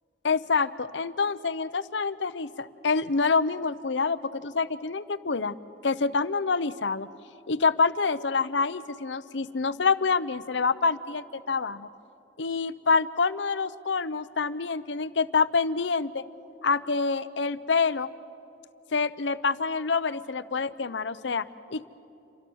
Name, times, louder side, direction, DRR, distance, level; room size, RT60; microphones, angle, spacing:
voice 1, 0.2-5.6 5.8-7.1 7.5-11.9 12.4-16.2 16.6-18.1 18.9-21.4 21.7-21.8, left 4 dB, 90° left, 14 dB, 0.8 m, -26 dB
29.0 x 24.5 x 6.3 m, 2.8 s
head